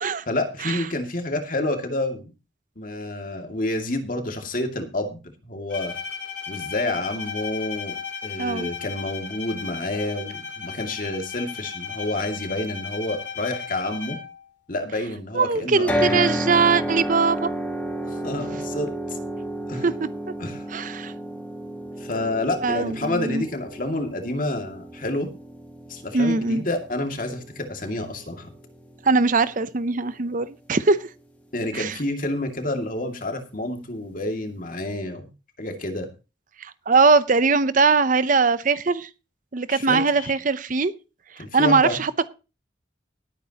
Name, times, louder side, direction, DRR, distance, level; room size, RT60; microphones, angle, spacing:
voice 1, 0.3-2.3 2.8-5.9 6.5-7.9 8.2-14.2 14.7-16.2 18.0-19.2 19.7-19.9 20.4-20.6 22.0-25.3 25.9-28.5 31.5-35.3 35.6-36.1 39.7-40.3 41.4-42.0, left 1 dB, 45° left, 5 dB, 2.3 m, -29 dB
Bowed string instrument, 5.7-14.5, left 6 dB, 70° left, 3.3 m, -35 dB
voice 2, 8.4-8.7 15.3-17.5 19.8-20.1 20.7-21.1 22.6-23.4 26.1-26.6 29.0-31.1 31.7-31.9 36.6-39.1 39.5-40.9 41.5-42.3, right 4 dB, 45° right, 15 dB, 0.7 m, -21 dB
sound 1, 15.9-30.0, equal, 10° left, 2.2 m, -32 dB
19.0 x 9.1 x 2.9 m, 0.31 s
head